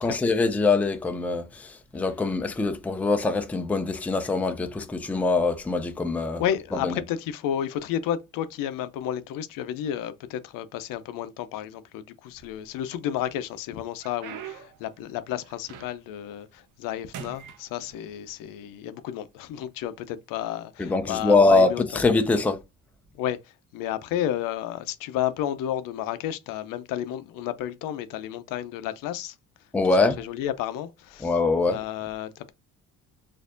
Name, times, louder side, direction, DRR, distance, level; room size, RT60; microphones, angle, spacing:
voice 1, 0.0-6.4 6.8-6.9 20.8-21.7 21.9-22.6 29.7-30.2 31.2-31.8, left 3 dB, 5° left, 0.4 m, -23 dB
voice 2, 6.4-22.0 23.1-29.4 29.8-31.3 31.7-32.5, left 11 dB, 75° left, 0.6 m, -32 dB
sound 1, 12.3-13.0 13.5-16.2 16.6-16.9 17.1-18.4 19.2-19.3 20.0-20.2 21.4-21.6, right 8 dB, 65° right, 0.8 m, -43 dB
4.2 x 2.6 x 2.5 m
cardioid pair, 130°, 33 cm